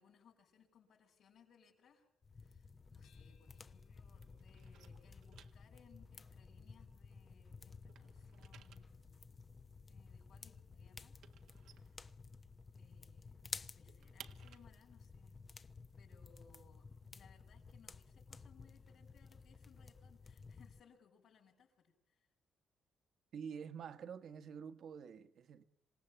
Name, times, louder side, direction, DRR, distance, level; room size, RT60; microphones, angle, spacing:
voice 1, 0.0-2.1 2.3-9.2 9.9-11.2 11.6-12.1 12.7-13.4 13.7-15.4 16.0-22.3, left 6 dB, 65° left, 6.0 m, -67 dB
sound 1, 2.2-20.8, left 4 dB, 30° left, 1.0 m, -54 dB
sound 2, 2.4-3.9 4.2-7.4 7.7-12.7 13.0-13.1 13.4-17.1, right 9 dB, 80° right, 1.6 m, -62 dB
sound 3, 3.0-7.8, left 8 dB, 85° left, 3.8 m, -81 dB
voice 2, 23.3-25.6, right 7 dB, 65° right, 1.6 m, -48 dB
27.0 x 18.0 x 8.9 m
cardioid pair, 90°, 0 cm